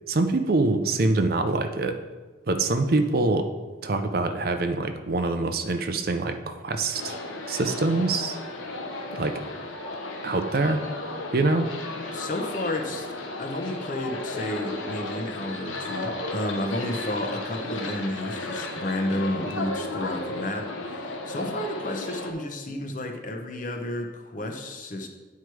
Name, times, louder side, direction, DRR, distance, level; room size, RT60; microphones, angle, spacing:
voice 1, 0.1-2.0 2.5-3.5 3.8-7.2 7.5-8.4 9.1-9.4 10.2-10.8 11.3-11.8, right 2 dB, 50° right, 7 dB, 0.5 m, -25 dB
sound 1, 6.9-22.3, left 2 dB, 90° left, 1.0 m, -34 dB
voice 2, 12.1-13.1 13.4-25.1, left 1 dB, 40° left, 3 dB, 0.9 m, -31 dB
9.5 x 4.7 x 4.7 m, 1.3 s
head